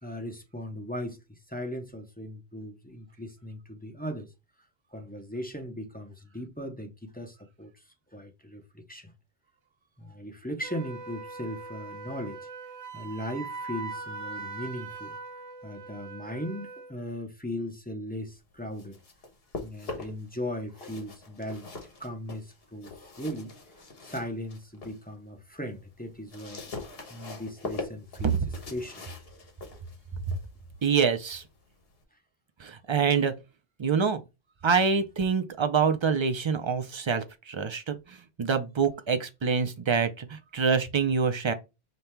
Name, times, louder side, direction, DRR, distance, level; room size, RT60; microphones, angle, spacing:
voice 1, 0.0-4.3 4.9-7.7 8.1-9.1 10.0-12.4 12.9-15.2 15.6-19.0 19.6-21.7 22.0-22.9 23.2-23.5 24.0-26.8 27.1-28.4 28.7-29.1, equal, 10° left, 0.6 m, -38 dB
Wind instrument woodwind instrument, 10.6-17.0, right 3 dB, 75° right, 0.9 m, -41 dB
sound 1, 18.5-20.3 20.7-25.0 25.4-32.0, left 3 dB, 65° left, 1.3 m, -43 dB
voice 2, 30.8-31.4 32.6-33.3 33.8-34.2 34.6-41.5, right 6 dB, 40° right, 0.4 m, -26 dB
5.3 x 2.2 x 4.4 m
omnidirectional pair, 1.1 m